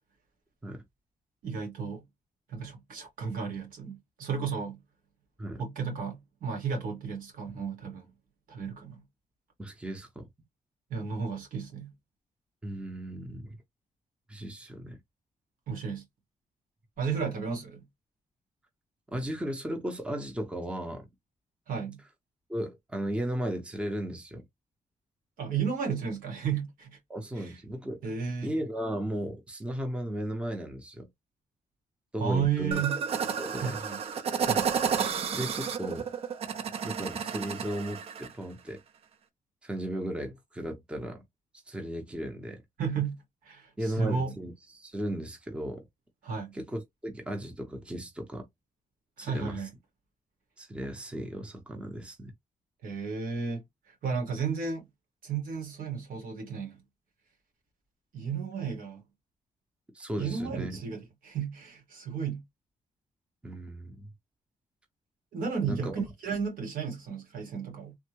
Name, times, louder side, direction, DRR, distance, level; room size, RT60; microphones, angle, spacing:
voice 1, 1.4-2.0 2.5-4.8 5.6-8.0 8.5-9.0 10.9-11.9 15.7-16.0 17.0-17.8 21.7-22.0 25.4-27.0 27.3-27.5 28.0-28.5 32.2-33.0 33.6-34.0 34.5-34.8 42.8-43.1 43.4-44.3 46.2-46.6 49.2-49.7 52.8-54.9 55.2-56.8 58.1-59.0 60.2-62.4 65.3-68.0, right 6 dB, 85° right, 1.7 m, -33 dB
voice 2, 9.6-10.3 12.6-13.6 14.3-15.0 19.1-21.1 22.5-24.5 27.1-28.0 28.4-31.1 32.1-32.8 33.4-33.8 35.3-36.1 36.8-38.8 39.6-41.2 41.7-42.6 43.8-45.8 46.5-48.5 49.2-49.6 50.6-52.3 59.9-60.7 63.4-64.1 65.6-66.0, right 1 dB, 10° right, 0.6 m, -35 dB
sound 1, 32.7-38.3, right 6 dB, 45° right, 0.4 m, -31 dB
3.4 x 2.1 x 3.0 m
wide cardioid pair, 170°, 14 cm